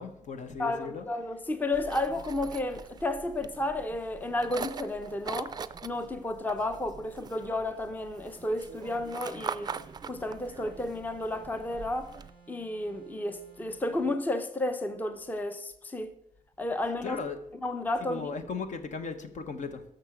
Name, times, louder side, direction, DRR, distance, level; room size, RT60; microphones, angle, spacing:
voice 1, 0.0-1.1 17.0-17.4 18.0-19.8, left 5 dB, 60° left, 1.2 m, -37 dB
voice 2, 0.6-5.6 5.8-9.7 10.1-12.1 12.5-16.1 16.6-17.2 17.6-18.3, left 2 dB, 10° left, 0.6 m, -32 dB
sound 1, 1.7-12.3, right 5 dB, 30° right, 0.4 m, -42 dB
sound 2, 8.4-14.1, right 5 dB, 35° left, 2.3 m, -57 dB
12.5 x 6.4 x 5.0 m
wide cardioid pair, 140°, 14 cm